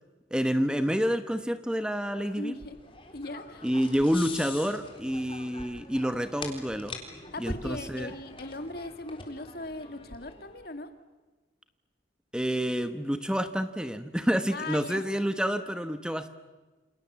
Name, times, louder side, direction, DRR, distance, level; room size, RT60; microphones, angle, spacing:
voice 1, 0.3-2.5 3.6-7.0 7.4-8.1 12.3-16.3, equal, 5° right, 10 dB, 1.1 m, -28 dB
sound 1, 2.1-10.7, left 3 dB, 25° left, 3.9 m, -44 dB
voice 2, 2.4-2.8 3.1-3.6 7.3-10.9 14.5-15.1, left 2 dB, 50° left, 8 dB, 2.3 m, -39 dB
29.0 x 27.5 x 7.5 m, 1.2 s
head